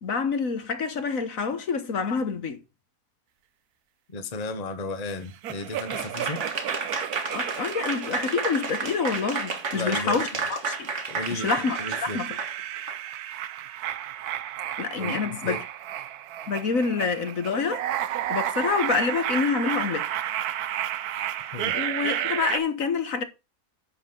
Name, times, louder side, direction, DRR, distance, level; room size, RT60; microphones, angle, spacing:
voice 1, 0.0-2.6 7.3-10.9 11.3-12.4 14.8-15.6 16.5-17.8 18.3-20.1 21.4-23.2, left 5 dB, 65° left, 1.7 m, -27 dB
voice 2, 4.1-6.4 9.7-10.2 11.1-11.5 11.8-12.2 15.0-15.6 21.5-21.8, left 3 dB, 30° left, 1.1 m, -34 dB
sound 1, 5.4-10.2 10.7-22.6, right 11 dB, 90° right, 1.2 m, -32 dB
Applause / Crowd, 5.8-13.0, right 4 dB, 55° right, 1.9 m, -31 dB
10.0 x 7.3 x 3.8 m
omnidirectional pair, 1.6 m